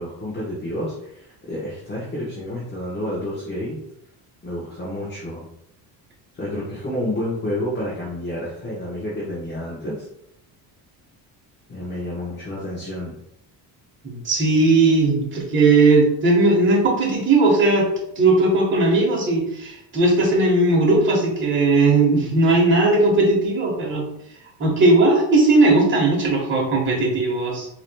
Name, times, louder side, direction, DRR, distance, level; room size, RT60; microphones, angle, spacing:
voice 1, 0.0-3.8 4.4-5.4 6.3-9.9 11.7-13.2, left 1 dB, 25° left, -7 dB, 1.2 m, -29 dB
voice 2, 14.0-17.9 18.2-24.1 24.6-27.7, right 2 dB, 25° right, -3 dB, 1.3 m, -17 dB
4.7 x 3.0 x 2.2 m, 0.77 s
cardioid pair, 120°, 43 cm